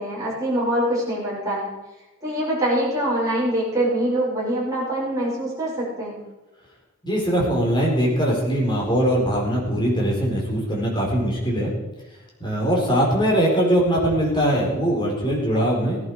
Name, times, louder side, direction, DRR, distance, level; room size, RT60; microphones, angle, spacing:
voice 1, 0.0-1.7 2.2-6.2, right 1 dB, 15° right, -7 dB, 6.1 m, -24 dB
voice 2, 7.0-11.7 12.4-16.0, equal, 20° left, -3 dB, 4.2 m, -21 dB
17.0 x 11.0 x 4.8 m, 1.1 s
head